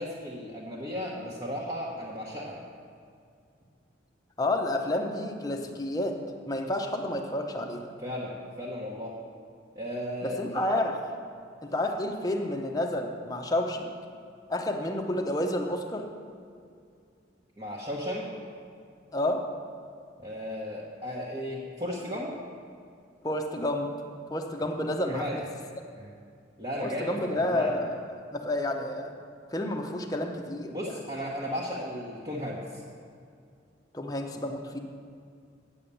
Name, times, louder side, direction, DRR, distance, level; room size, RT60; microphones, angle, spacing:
voice 1, 0.0-2.6 8.0-9.1 9.7-10.6 17.6-18.3 20.2-22.3 25.1-25.4 26.0-26.1 26.6-27.8 30.7-32.8, equal, 25° right, -5 dB, 1.1 m, -35 dB
voice 2, 4.4-6.2 6.4-7.9 10.2-10.9 11.6-13.9 14.5-16.1 19.1-19.4 23.2-23.9 24.3-25.4 26.8-28.0 28.3-29.1 29.5-30.9 33.9-34.8, left 1 dB, 20° left, 2 dB, 0.8 m, -30 dB
8.6 x 7.6 x 6.9 m, 2.4 s
head